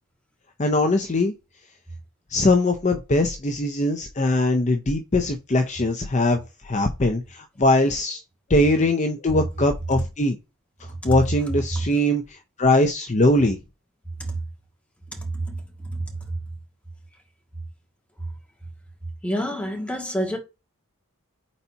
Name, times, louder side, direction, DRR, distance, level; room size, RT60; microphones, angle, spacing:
voice 1, 0.6-1.3 2.3-8.2 8.5-10.4 10.8-13.6, left 1 dB, 35° left, 0.7 m, -21 dB
voice 2, 15.1-16.4 19.2-20.4, right 1 dB, 5° left, 1.6 m, -28 dB
4.2 x 4.1 x 5.6 m
head